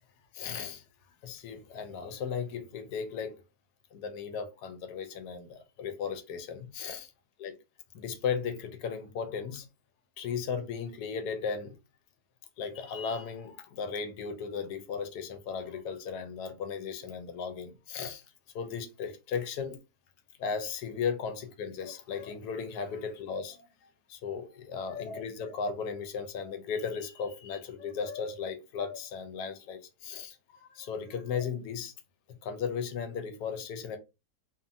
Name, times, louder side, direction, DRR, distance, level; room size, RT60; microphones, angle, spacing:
voice 1, 0.3-0.8 1.2-3.4 3.9-7.1 7.4-7.5 7.9-9.7 10.2-11.8 12.6-18.2 18.5-19.8 20.4-31.9 32.3-34.0, left 6 dB, 90° left, 1.2 m, -36 dB
2.6 x 2.5 x 2.5 m
omnidirectional pair, 1.7 m